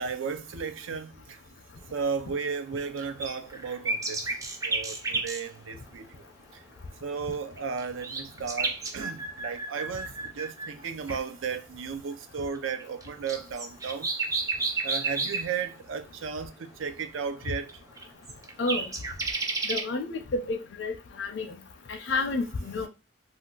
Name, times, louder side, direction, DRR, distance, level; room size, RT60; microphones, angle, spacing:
voice 1, 0.0-1.4 1.9-4.2 4.6-6.2 6.5-6.6 7.0-14.1 14.8-17.7, right 6 dB, 85° right, 0.4 m, -34 dB
sound 1, 2.5-5.4 7.3-10.7 11.1-11.2 12.5-15.6 17.4-17.5 17.7-17.8 18.0-19.8, right 3 dB, 15° right, 0.3 m, -31 dB
voice 2, 19.7-20.9 21.2-21.5 22.1-22.9, left 3 dB, 65° left, 0.5 m, -29 dB
2.5 x 2.3 x 3.7 m
head